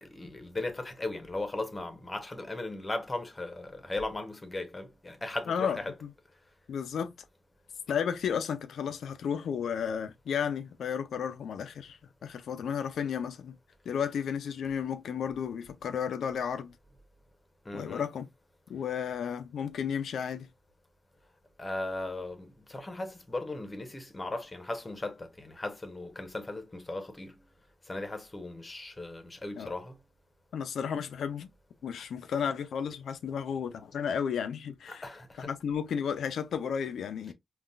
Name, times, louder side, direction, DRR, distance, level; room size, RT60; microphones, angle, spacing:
voice 1, 0.0-5.9 17.6-18.0 21.6-27.3 27.9-30.0 34.9-35.5, left 2 dB, 25° left, 0.9 m, -37 dB
voice 2, 5.5-6.1 6.7-7.1 7.9-13.6 13.9-16.7 17.7-18.3 18.7-20.5 29.6-29.7 30.5-31.5 31.8-35.0 35.4-37.3, left 7 dB, 80° left, 0.5 m, -33 dB
3.8 x 2.4 x 2.4 m
cardioid pair, 65°, 0 cm